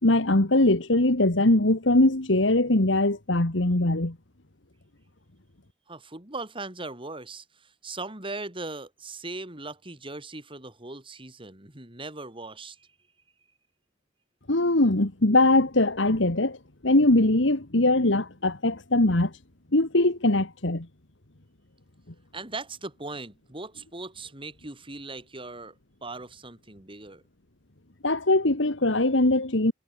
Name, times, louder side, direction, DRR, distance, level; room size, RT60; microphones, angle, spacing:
voice 1, 0.0-4.2 14.5-16.6 16.8-19.3 19.7-20.9 28.0-29.7, left 2 dB, 70° left, 2.1 m, -21 dB
voice 2, 5.9-12.9 22.3-25.8 26.0-27.2, right 3 dB, 25° right, 4.1 m, -39 dB
head